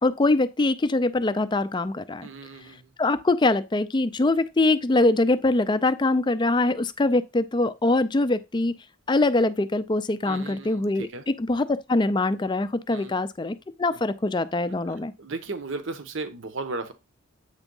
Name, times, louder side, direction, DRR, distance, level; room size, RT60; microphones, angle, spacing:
voice 1, 0.0-2.3 3.0-8.7 9.1-11.1 11.4-15.1, left 2 dB, 20° left, 0.4 m, -23 dB
voice 2, 2.2-2.9 10.2-11.2 12.9-13.1 13.9-14.0 14.8-16.9, right 3 dB, 60° right, 0.8 m, -36 dB
8.1 x 3.4 x 5.4 m
head